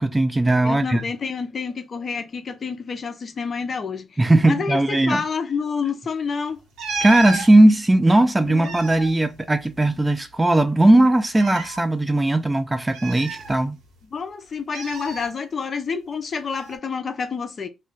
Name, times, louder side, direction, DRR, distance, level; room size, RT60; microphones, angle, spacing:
voice 1, 0.0-1.0 4.2-5.2 7.0-13.8, right 1 dB, 15° right, 0.4 m, -18 dB
voice 2, 0.6-4.2 4.5-6.6 8.5-8.7 14.1-17.7, left 5 dB, 45° left, 0.6 m, -28 dB
sound 1, 6.8-7.5 8.4-10.1 10.3-10.4 11.3-11.8 12.9-14.0 14.7-15.3 16.5-16.8, right 3 dB, 80° right, 0.9 m, -32 dB
2.3 x 2.2 x 3.9 m
cardioid pair, 90°, 0 cm